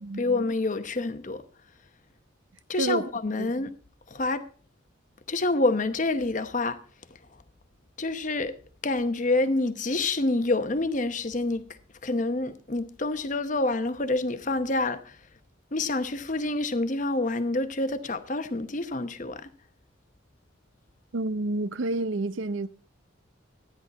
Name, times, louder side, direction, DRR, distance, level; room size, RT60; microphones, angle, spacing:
voice 1, 0.2-1.4 2.7-3.7 4.1-4.4 5.3-6.8 8.0-8.5 8.8-11.7 12.0-15.2 15.7-19.5, left 2 dB, 40° left, 0.9 m, -27 dB
voice 2, 21.1-22.7, right 2 dB, 75° right, 0.6 m, -29 dB
13.0 x 10.0 x 4.1 m
head